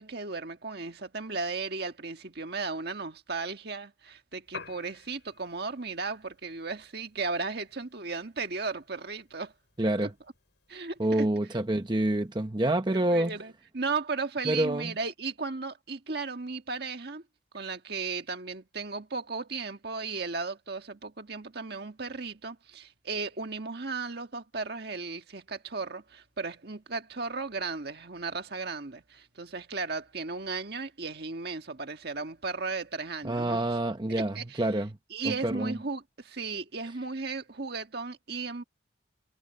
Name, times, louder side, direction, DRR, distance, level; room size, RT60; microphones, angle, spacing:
voice 1, 0.0-9.5 10.0-10.1 10.7-11.3 12.9-17.2 17.5-33.6 34.3-34.7 35.1-38.6, right 4 dB, 55° right, 1.6 m, -35 dB
Piano, 4.4-12.5, left 5 dB, 65° left, 7.4 m, -53 dB
voice 2, 9.8-10.1 11.0-13.3 14.5-14.9 33.2-35.0 35.2-35.8, right 1 dB, 25° right, 0.8 m, -27 dB
head